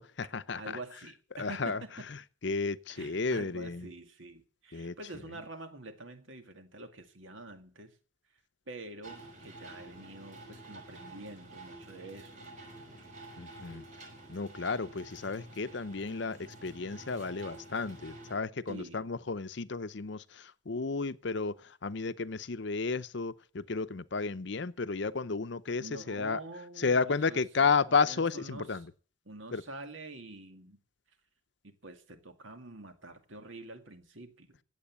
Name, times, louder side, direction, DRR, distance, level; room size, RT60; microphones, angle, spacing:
voice 1, 0.0-0.6 1.4-1.8 2.4-3.9 4.7-4.9 13.4-13.8 14.3-26.4 26.8-28.9 29.5-29.6, left 4 dB, 55° left, 0.7 m, -32 dB
voice 2, 0.6-2.1 2.9-8.0 8.7-12.5 18.7-19.1 25.8-28.9 29.2-30.8 31.6-34.5, right 2 dB, 70° right, 2.2 m, -47 dB
sound 1, 9.0-18.4, right 2 dB, 35° right, 5.6 m, -50 dB
16.0 x 8.3 x 8.3 m
head